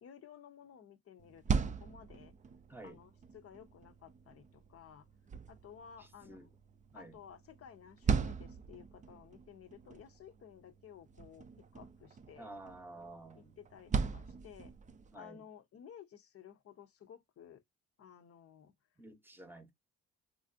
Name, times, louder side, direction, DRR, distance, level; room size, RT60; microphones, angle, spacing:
voice 1, 0.0-2.3 2.8-5.1 5.5-6.5 6.9-12.5 13.3-14.7 15.1-17.6 18.0-18.7, left 8 dB, 50° left, 0.6 m, -55 dB
sound 1, 1.2-15.1, right 6 dB, 25° right, 0.4 m, -40 dB
voice 2, 2.7-3.0 6.0-6.5 6.9-7.2 12.3-13.6 15.1-15.5 19.0-19.7, right 2 dB, 5° right, 0.8 m, -51 dB
3.2 x 2.5 x 2.6 m
cardioid pair, 90°, 30 cm